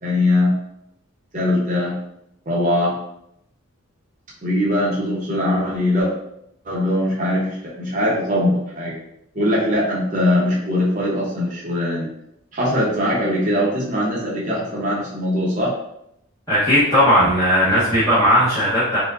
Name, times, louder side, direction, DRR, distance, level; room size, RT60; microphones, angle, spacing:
voice 1, 0.0-0.6 1.3-2.0 2.5-3.0 4.4-6.1 6.6-9.0 9.3-12.1 12.5-15.7, left 1 dB, 35° right, -6 dB, 0.8 m, -21 dB
voice 2, 16.5-19.0, equal, 15° left, -12 dB, 0.9 m, -16 dB
4.4 x 2.2 x 2.5 m, 0.77 s
head